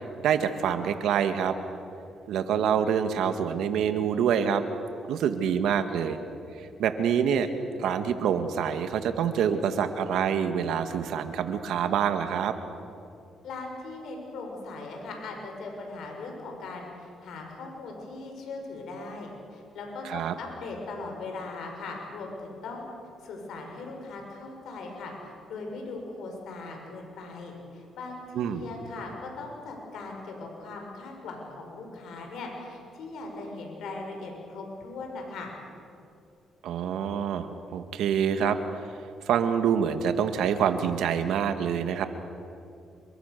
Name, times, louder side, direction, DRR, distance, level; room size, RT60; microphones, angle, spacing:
voice 1, 0.2-1.6 2.3-4.6 5.1-6.2 6.8-7.5 7.8-12.6 20.0-20.3 28.4-28.7 36.6-38.6 39.3-42.0, right 8 dB, 80° right, 8 dB, 1.9 m, -26 dB
voice 2, 13.4-22.9 23.2-35.5, left 3 dB, 75° left, 1 dB, 6.2 m, -39 dB
28.5 x 23.5 x 6.9 m, 2.6 s
cardioid pair, 90°, 0 cm